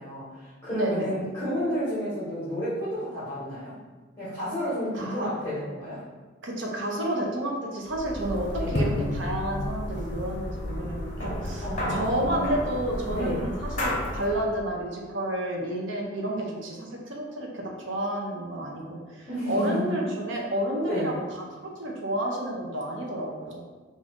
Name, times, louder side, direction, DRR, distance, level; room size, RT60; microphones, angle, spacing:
voice 1, 0.0-3.7 4.2-6.0 8.6-8.7 11.6-12.2 13.1-13.4 19.3-19.9 20.9-21.1, equal, 15° left, -12 dB, 1.1 m, -31 dB
voice 2, 0.7-1.1 4.9-5.3 6.4-21.2 21.8-23.6, right 1 dB, 65° right, -1 dB, 0.7 m, -30 dB
sound 1, 7.9-14.4, left 1 dB, 35° left, 0.8 m, -31 dB
3.7 x 2.6 x 3.6 m, 1.3 s
head